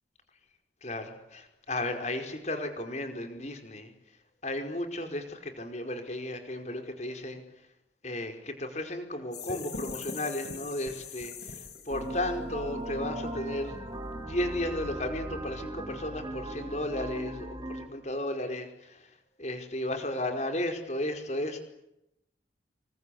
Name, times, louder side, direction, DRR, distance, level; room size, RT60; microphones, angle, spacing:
voice 1, 0.8-3.9 4.4-7.4 8.0-14.0 14.3-19.1 19.4-21.6, left 1 dB, 40° left, 6 dB, 5.0 m, -34 dB
sound 1, 9.3-12.1, left 4 dB, 60° left, 6.0 m, -40 dB
sound 2, 11.9-17.9, right 1 dB, 25° right, 3.7 m, -38 dB
28.0 x 24.5 x 8.5 m, 0.82 s
head